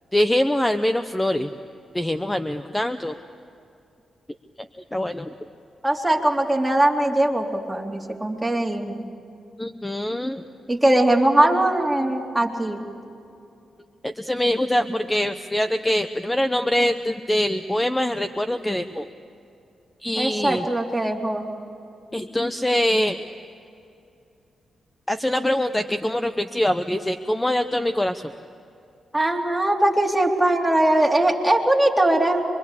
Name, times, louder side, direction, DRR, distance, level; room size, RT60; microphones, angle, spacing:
voice 1, 0.1-1.5 1.9-3.2 4.9-5.3 9.6-10.4 14.0-19.1 20.0-20.7 22.1-23.2 25.1-28.3, left 1 dB, 15° left, 9 dB, 0.9 m, -24 dB
voice 2, 5.8-9.0 10.7-12.8 20.2-21.4 29.1-32.5, right 1 dB, 10° right, 0 dB, 3.4 m, -21 dB
26.0 x 23.5 x 8.4 m, 2.6 s
cardioid pair, 65°, 0 cm